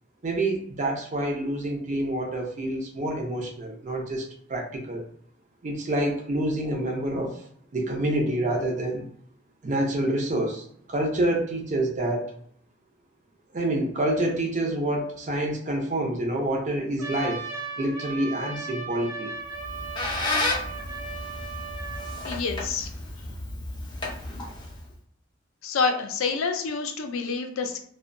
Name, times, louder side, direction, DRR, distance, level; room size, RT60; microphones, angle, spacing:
voice 1, 0.2-5.0 5.6-7.4 7.7-9.1 9.6-12.3 13.5-17.4 17.8-19.3, right 1 dB, 35° right, 1 dB, 0.5 m, -27 dB
Trumpet, 17.0-22.3, right 4 dB, 70° right, 0.7 m, -37 dB
Squeak, 19.5-24.9, left 2 dB, 20° left, 0.4 m, -32 dB
voice 2, 22.2-22.9 25.6-27.8, left 5 dB, 80° left, 6 dB, 0.4 m, -27 dB
2.5 x 2.1 x 2.5 m, 0.64 s
head